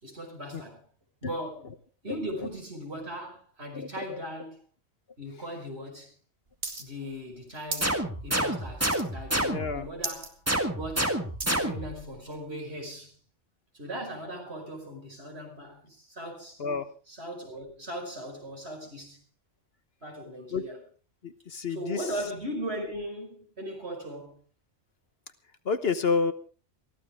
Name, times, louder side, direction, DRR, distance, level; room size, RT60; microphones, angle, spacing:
voice 1, 0.0-0.8 1.2-1.7 2.0-4.6 5.2-6.1 6.8-10.4 10.7-11.2 11.4-13.2 13.7-16.6 17.1-19.2 20.0-20.8 21.7-24.4, equal, 60° right, 5.5 m, -38 dB
voice 2, 3.7-4.2 9.5-9.8 16.6-16.8 20.5-20.6 21.2-22.0 25.6-26.3, left 5 dB, 55° left, 1.3 m, -29 dB
sound 1, 6.6-6.8 7.1-7.9 8.3-8.5 8.8-9.3 9.6-9.7 10.0-10.3 10.7-11.7 12.3-12.4, right 3 dB, 45° right, 2.3 m, -35 dB
sound 2, 7.8-9.9 10.5-12.0, right 1 dB, 10° right, 1.6 m, -29 dB
23.0 x 14.5 x 3.6 m
omnidirectional pair, 1.2 m